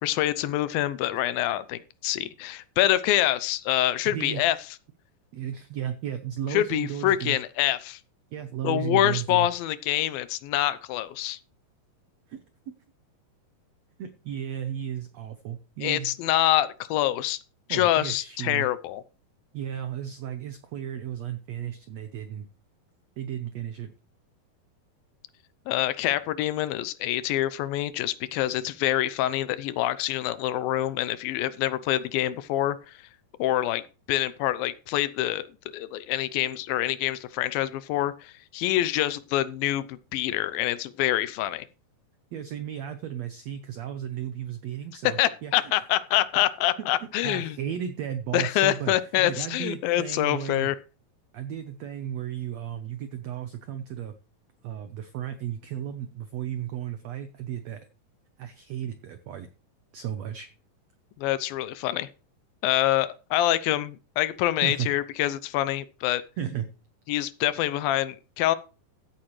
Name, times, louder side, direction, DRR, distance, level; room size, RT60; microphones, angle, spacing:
voice 1, 0.0-4.6 6.5-8.0 8.6-11.4 15.8-17.4 17.7-19.0 25.7-32.8 33.4-33.8 34.1-41.7 45.2-47.6 48.3-50.8 61.2-62.1 62.6-66.2 67.1-68.6, left 14 dB, 85° left, 15 dB, 2.5 m, -26 dB
voice 2, 4.0-4.4 5.3-7.4 8.3-9.5 12.3-12.7 14.0-16.1 17.7-18.7 19.5-22.5 23.2-23.9 42.3-45.5 47.2-50.7 51.3-54.1 54.6-57.8 58.4-59.5 59.9-60.5 64.6-64.9 66.4-66.6, right 10 dB, 70° right, 9 dB, 1.7 m, -34 dB
15.0 x 8.8 x 3.2 m, 0.34 s
omnidirectional pair, 4.1 m